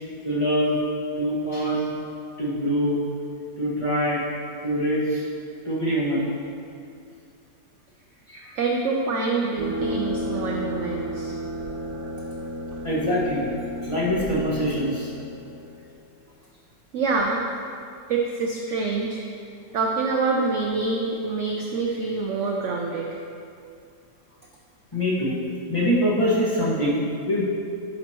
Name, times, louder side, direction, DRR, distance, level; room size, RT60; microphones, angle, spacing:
voice 1, 0.2-0.8 1.2-1.9 2.4-3.0 3.6-4.2 4.6-5.2 5.6-6.3 8.3-8.5 12.8-13.5 13.8-15.1 24.9-25.4 25.7-27.0 27.3-27.4, equal, 20° left, -8 dB, 1.4 m, -24 dB
voice 2, 8.6-11.3 16.9-17.4 18.1-19.2 19.7-23.1, right 3 dB, 70° right, 0 dB, 0.7 m, -26 dB
sound 1, 9.6-15.8, equal, 15° right, 1.6 m, -32 dB
11.0 x 5.5 x 3.0 m, 2.5 s
omnidirectional pair, 1.8 m